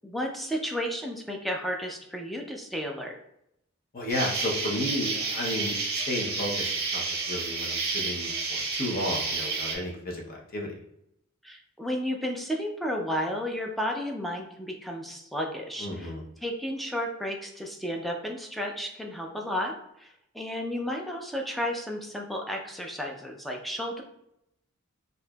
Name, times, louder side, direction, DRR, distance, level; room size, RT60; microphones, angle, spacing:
voice 1, 0.0-3.1 11.4-16.1 16.4-24.0, equal, ahead, 0 dB, 0.4 m, -33 dB
voice 2, 3.9-5.8 6.0-10.7 15.8-16.2, left 1 dB, 45° left, -1 dB, 0.7 m, -33 dB
Insect, 4.1-9.8, right 4 dB, 50° right, 0.7 m, -30 dB
4.6 x 2.5 x 2.3 m, 0.80 s
head